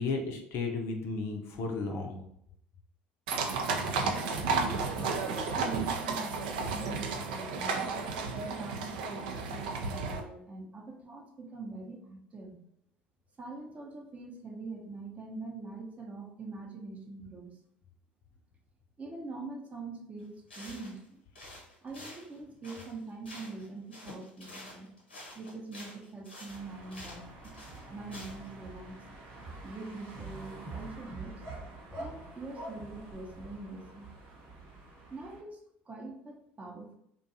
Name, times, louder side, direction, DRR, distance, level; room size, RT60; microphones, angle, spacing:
voice 1, 0.0-2.2, left 4 dB, 50° left, 2 dB, 0.5 m, -33 dB
sound 1, 3.3-10.2, right 4 dB, 70° right, 0.4 m, -32 dB
voice 2, 4.5-8.0 8.5-12.6 13.4-17.6 19.0-21.2 21.8-24.9 25.3-27.6 27.9-29.0 29.6-31.4 32.0-34.1 35.1-37.0, right 3 dB, 25° right, 1 dB, 0.6 m, -43 dB
sound 2, 20.2-20.3 20.5-21.1 21.3-23.7 23.9-28.5, left 1 dB, 90° left, 0.9 m, -49 dB
sound 3, 26.5-35.4, right 2 dB, 55° right, 0.8 m, -46 dB
2.6 x 2.2 x 2.6 m, 0.73 s
hypercardioid pair, 65°, 5 cm